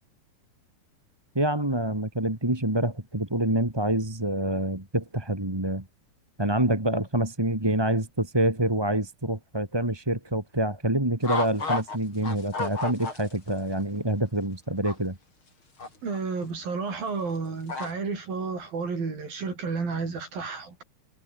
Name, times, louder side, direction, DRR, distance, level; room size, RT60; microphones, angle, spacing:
voice 1, 1.3-5.8 6.4-15.2, right 1 dB, 10° right, 2.1 m, -26 dB
Geese walking & honking, 11.2-12.0 12.2-13.5 13.8-13.9 14.8-15.0 15.8-16.2 17.7-17.9, left 3 dB, 35° left, 6.1 m, -30 dB
voice 2, 16.0-20.8, right 4 dB, 80° right, 8.0 m, -31 dB
omnidirectional pair, 4.0 m